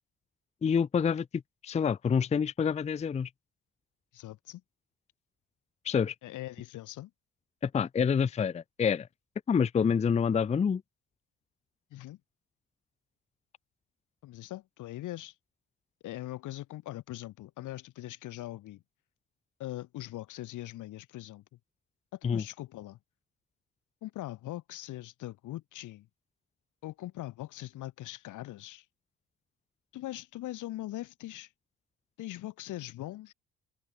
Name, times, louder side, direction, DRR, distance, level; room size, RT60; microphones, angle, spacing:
voice 1, 0.6-3.3 5.8-6.1 7.6-9.1 9.5-10.8 22.2-22.4, left 6 dB, 25° left, 0.4 m, -27 dB
voice 2, 4.1-4.6 6.2-7.1 11.9-12.2 14.2-15.3 16.0-18.8 19.6-21.4 22.1-23.0 24.0-26.1 26.8-28.8 29.9-31.5 32.2-33.3, left 15 dB, 90° left, 2.4 m, -41 dB
cardioid pair, 90°, 30 cm